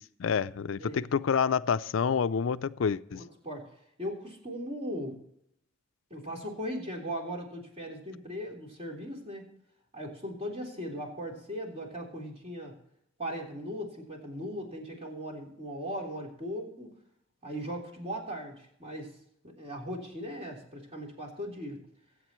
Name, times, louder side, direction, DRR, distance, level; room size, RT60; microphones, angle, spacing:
voice 1, 0.0-3.2, left 6 dB, 80° left, 0.4 m, -28 dB
voice 2, 3.1-3.7 4.0-5.2 6.1-9.5 9.9-12.8 13.2-16.9 17.4-19.1 19.4-21.8, equal, 30° right, 3.6 m, -38 dB
24.5 x 8.1 x 3.1 m
head